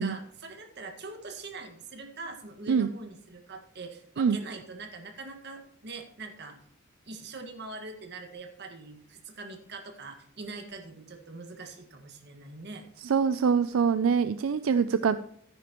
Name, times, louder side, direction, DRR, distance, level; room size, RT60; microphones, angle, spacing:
voice 1, 0.0-6.6 7.0-12.8, right 3 dB, 55° right, 4 dB, 1.7 m, -43 dB
voice 2, 13.0-15.2, right 6 dB, 75° right, 12 dB, 0.4 m, -24 dB
13.5 x 10.0 x 3.0 m, 0.71 s
head